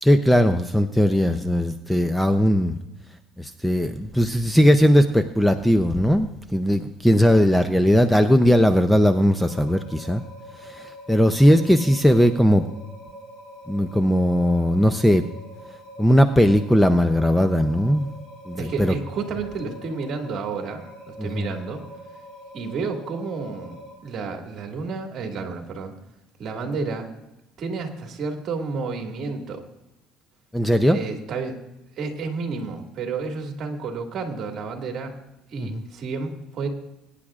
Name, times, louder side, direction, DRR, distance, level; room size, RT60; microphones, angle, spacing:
voice 1, 0.0-2.8 3.4-10.2 10.8-12.6 13.7-15.2 16.0-18.1 18.5-18.9 21.2-21.5 30.5-31.0 35.6-35.8, equal, 5° left, 8 dB, 0.5 m, -19 dB
sound 1, 9.4-24.0, equal, 50° left, 3.3 m, -44 dB
voice 2, 18.6-21.8 22.5-23.8 24.0-25.9 26.4-27.1 27.6-29.6 30.9-31.6 32.0-35.1 35.5-36.7, right 4 dB, 45° right, 3 dB, 2.0 m, -31 dB
23.0 x 9.9 x 2.4 m, 0.94 s
cardioid pair, 135°, 0 cm